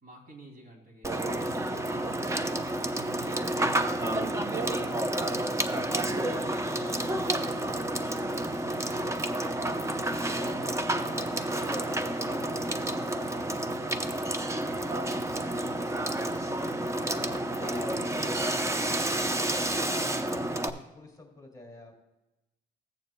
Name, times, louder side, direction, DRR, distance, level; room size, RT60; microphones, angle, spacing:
voice 1, 0.0-4.1 4.4-6.2, right 1 dB, 45° right, 1 dB, 2.8 m, -52 dB
Water / Water tap faucet / Sink (filling or washing), 1.0-20.7, right 1 dB, 15° right, 0.7 m, -30 dB
voice 2, 1.1-1.8 4.6-5.5 5.9-8.0 10.2-13.8 14.2-16.3 16.9-18.9 19.5-22.0, left 1 dB, 15° left, 1 dB, 2.6 m, -48 dB
15.0 x 9.1 x 2.2 m, 0.98 s
cardioid pair, 90°, 20 cm